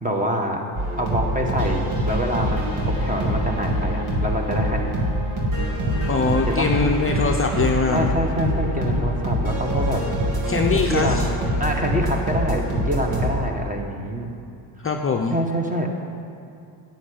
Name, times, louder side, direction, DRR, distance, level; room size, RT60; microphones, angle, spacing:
voice 1, 0.0-0.6 1.0-5.0 6.6-6.7 7.9-10.0 10.9-11.3 11.6-14.3 15.3-15.9, equal, 15° right, 2 dB, 1.7 m, -26 dB
Ambient-background-music-floating, 0.7-13.3, equal, 70° right, 2.7 m, -24 dB
voice 2, 6.1-8.0 10.5-11.1 14.8-15.3, left 4 dB, 25° left, 2 dB, 0.8 m, -22 dB
10.0 x 7.9 x 8.8 m, 2.6 s
cardioid pair, 100°, 50 cm